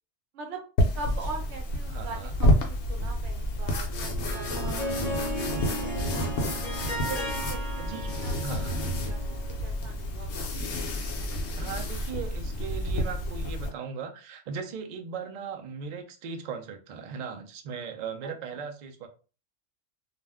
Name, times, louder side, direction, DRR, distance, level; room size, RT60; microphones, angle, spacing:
sound 1, 0.8-13.7, equal, 70° left, 0.9 m, -29 dB
voice 1, 0.9-6.6 7.1-8.6 9.0-10.3, right 3 dB, 80° right, 2 dB, 1.0 m, -42 dB
voice 2, 1.9-2.3 7.8-8.8 11.6-19.1, right 6 dB, 55° right, 4 dB, 0.5 m, -38 dB
Harp, 3.9-9.7, equal, 40° left, 0.8 m, -36 dB
2.4 x 2.1 x 3.4 m, 0.35 s
omnidirectional pair, 1.2 m